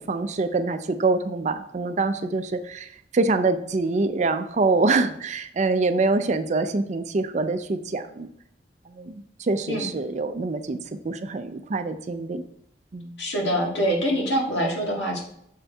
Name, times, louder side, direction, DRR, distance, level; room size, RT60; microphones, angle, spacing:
voice 1, 0.0-8.3 8.9-9.1 9.4-10.8 11.0-12.4 12.9-13.2, right 3 dB, 40° right, 10 dB, 0.4 m, -25 dB
voice 2, 13.2-15.2, equal, 85° left, -2 dB, 1.8 m, -24 dB
6.6 x 4.2 x 3.4 m, 0.72 s
head